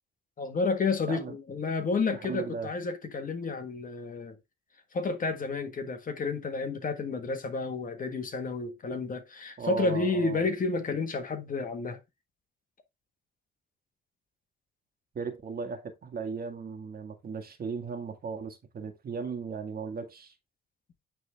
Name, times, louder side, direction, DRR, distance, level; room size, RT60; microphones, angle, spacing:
voice 1, 0.4-4.4 4.9-12.0, left 4 dB, 45° left, 1.5 m, -31 dB
voice 2, 2.1-2.7 9.6-10.4 15.1-20.3, right 5 dB, 50° right, 1.7 m, -36 dB
9.2 x 3.8 x 3.4 m
cardioid pair, 90°, 20 cm